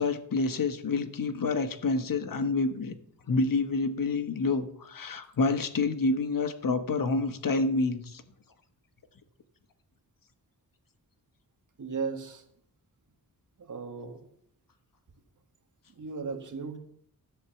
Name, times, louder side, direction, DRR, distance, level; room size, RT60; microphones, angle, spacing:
voice 1, 0.0-2.9 3.3-8.2, left 3 dB, 60° left, 9 dB, 1.2 m, -28 dB
voice 2, 11.8-12.4 13.6-14.2 16.0-16.8, right 5 dB, 55° right, 6 dB, 1.7 m, -36 dB
14.5 x 8.0 x 7.1 m, 0.69 s
wide cardioid pair, 145°, 37 cm